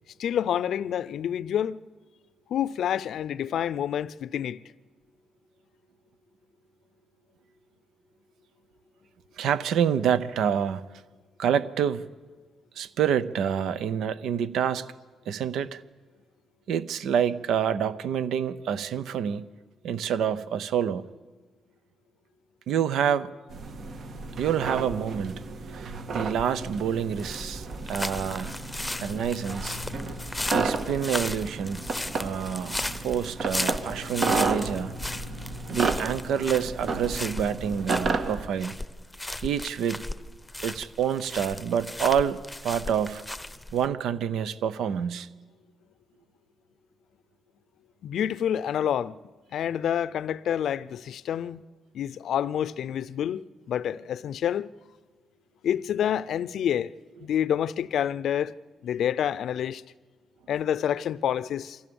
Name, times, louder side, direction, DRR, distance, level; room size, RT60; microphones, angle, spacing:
voice 1, 0.2-1.8 2.5-4.6 48.0-49.2 49.5-51.6 51.9-54.7 55.6-56.9 57.2-58.5 58.8-59.8 60.5-61.8, left 9 dB, 75° left, 0.5 m, -28 dB
voice 2, 9.4-10.9 11.4-12.1 12.8-14.9 15.3-15.8 16.7-19.5 19.8-21.0 22.7-23.3 24.4-25.3 25.7-28.5 29.0-29.8 30.5-31.8 32.2-34.9 35.7-38.8 39.4-40.0 40.6-43.2 43.7-45.3, right 8 dB, 85° right, 0.8 m, -27 dB
sound 1, 23.5-38.5, right 3 dB, 60° right, 1.7 m, -32 dB
sound 2, 27.1-43.9, left 1 dB, 10° left, 0.8 m, -36 dB
24.0 x 15.5 x 7.1 m
cardioid pair, 100°, 0 cm